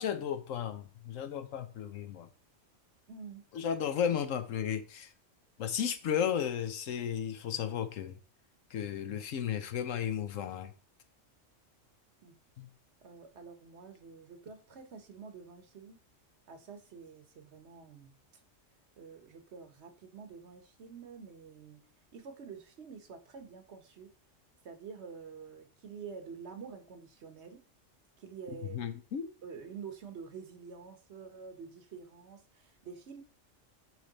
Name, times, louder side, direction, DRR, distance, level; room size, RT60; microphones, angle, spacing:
voice 1, 0.0-2.3 3.5-5.1 5.6-8.2 8.7-10.7 12.6-12.7 28.7-29.3, left 8 dB, 80° left, 1.2 m, -34 dB
voice 2, 3.1-3.5 4.1-4.2 12.2-12.4 13.0-16.0 16.5-18.2 19.0-21.9 22.1-24.1 24.6-27.6 28.2-28.9 29.4-33.2, right 6 dB, 60° right, 1.2 m, -48 dB
9.2 x 3.3 x 4.0 m
omnidirectional pair, 1.3 m